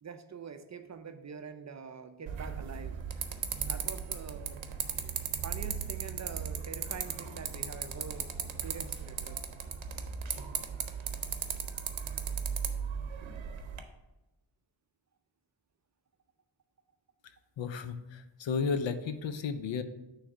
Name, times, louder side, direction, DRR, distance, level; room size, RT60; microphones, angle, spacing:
voice 1, 0.0-2.9 3.6-4.6 5.4-9.4 9.9-10.0 12.1-12.4, right 6 dB, 40° right, 9 dB, 0.5 m, -45 dB
sound 1, 2.3-13.8, right 7 dB, 85° right, 0.7 m, -37 dB
voice 2, 17.6-19.8, left 5 dB, 75° left, 10 dB, 0.6 m, -33 dB
6.2 x 3.2 x 5.9 m, 1.0 s
wide cardioid pair, 110°, 45 cm